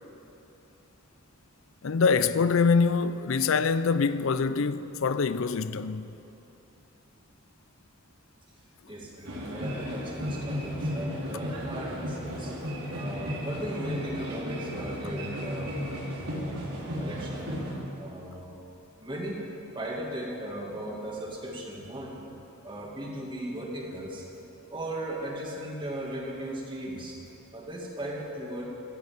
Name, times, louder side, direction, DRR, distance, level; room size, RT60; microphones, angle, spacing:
voice 1, 1.8-6.1, left 5 dB, 60° left, 0.5 m, -24 dB
voice 2, 8.9-12.5 12.9-16.6 16.9-17.5 17.9-18.5 19.0-19.4 19.7-22.3 22.6-24.2 24.7-27.2 27.5-28.7, right 1 dB, 20° right, 2.1 m, -37 dB
sound 1, 9.2-17.7, equal, 90° right, 3.5 m, -34 dB
15.0 x 8.1 x 8.6 m
head